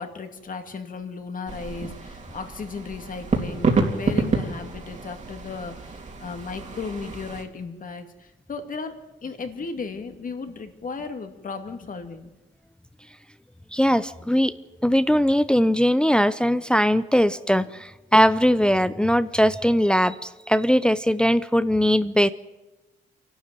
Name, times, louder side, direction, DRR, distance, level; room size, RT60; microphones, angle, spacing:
voice 1, 0.0-12.3, left 4 dB, 45° left, 7 dB, 2.2 m, -35 dB
sound 1, 1.5-7.4, right 3 dB, 35° right, 3.1 m, -28 dB
voice 2, 13.7-14.5 14.8-22.3, equal, 5° left, 13 dB, 0.6 m, -20 dB
26.0 x 12.0 x 9.2 m, 1.1 s
cardioid pair, 90°, 20 cm